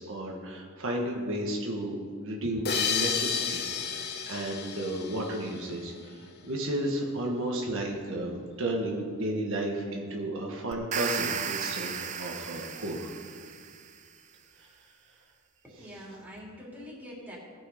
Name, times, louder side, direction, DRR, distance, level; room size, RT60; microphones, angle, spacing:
voice 1, 0.0-13.1 14.6-14.7 15.8-16.0, right 1 dB, 60° right, 0 dB, 1.4 m, -33 dB
sound 1, 2.7-6.0, left 6 dB, 50° left, 0.8 m, -32 dB
sound 2, 10.7-13.9, right 7 dB, 35° right, 0.6 m, -35 dB
voice 2, 15.6-17.4, equal, 10° right, -5 dB, 2.8 m, -44 dB
18.0 x 6.2 x 5.1 m, 2.1 s
head